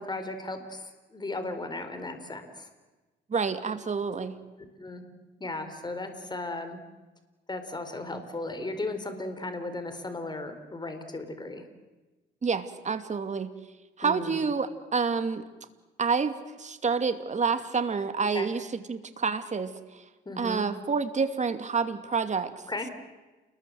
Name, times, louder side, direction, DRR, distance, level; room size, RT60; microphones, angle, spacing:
voice 1, 0.0-2.7 4.8-5.0 5.4-6.8 7.5-11.6 14.0-14.4 18.3-18.5 20.2-20.7 22.7-22.9, left 2 dB, 20° left, 7 dB, 4.6 m, -36 dB
voice 2, 3.3-4.4 12.4-13.5 14.0-15.5 16.0-16.3 16.6-20.0 20.4-22.5, right 5 dB, 35° right, 10 dB, 2.6 m, -28 dB
29.5 x 21.5 x 7.9 m, 1.2 s
cardioid pair, 90°, 20 cm